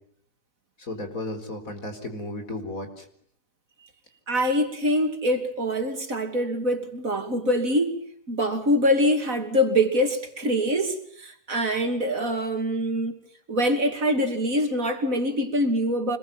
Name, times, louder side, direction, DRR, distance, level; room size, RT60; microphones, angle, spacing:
voice 1, 0.8-3.1, left 1 dB, 55° left, 6 dB, 4.7 m, -34 dB
voice 2, 4.3-8.0 8.3-13.2 13.5-16.2, equal, 55° right, 6 dB, 3.1 m, -24 dB
26.0 x 21.0 x 8.8 m, 0.64 s
omnidirectional pair, 1.7 m